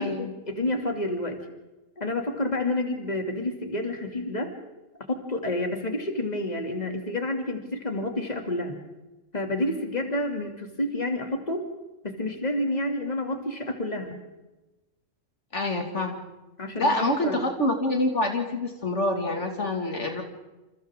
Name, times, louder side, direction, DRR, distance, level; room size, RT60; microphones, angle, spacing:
voice 1, 0.0-1.4 2.0-4.5 5.1-8.8 9.3-11.7 12.0-14.1 16.6-17.4, left 1 dB, 30° left, 3 dB, 2.9 m, -29 dB
voice 2, 15.5-16.2 16.8-20.2, left 1 dB, 65° left, 3 dB, 2.6 m, -26 dB
29.0 x 28.0 x 3.8 m, 1.1 s
omnidirectional pair, 1.3 m